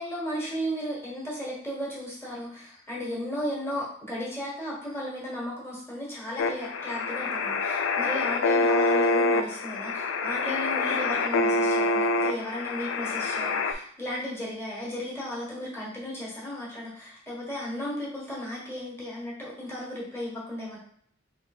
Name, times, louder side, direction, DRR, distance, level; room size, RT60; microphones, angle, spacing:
voice 1, 0.0-20.8, equal, 15° left, -5 dB, 1.4 m, -35 dB
sound 1, 6.4-13.7, left 3 dB, 70° left, 0.4 m, -26 dB
3.2 x 3.2 x 4.3 m, 0.62 s
head